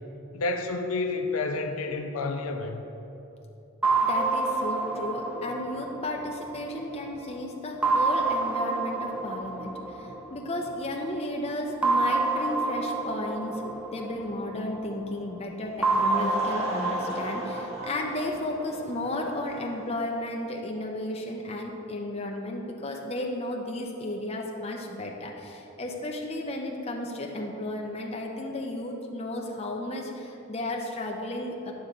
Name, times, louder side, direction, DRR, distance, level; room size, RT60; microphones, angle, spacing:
voice 1, 0.3-2.8, left 3 dB, 80° left, 5 dB, 0.5 m, -29 dB
sound 1, 3.8-7.2 7.8-10.7 11.8-14.9 15.8-18.9, right 3 dB, 5° right, 0.3 m, -28 dB
voice 2, 4.0-13.6 13.9-31.7, left 1 dB, 30° left, 0 dB, 0.6 m, -33 dB
Laughter / Crowd, 15.7-20.2, equal, 30° right, 1.1 m, -38 dB
9.4 x 3.6 x 6.6 m, 3.0 s
head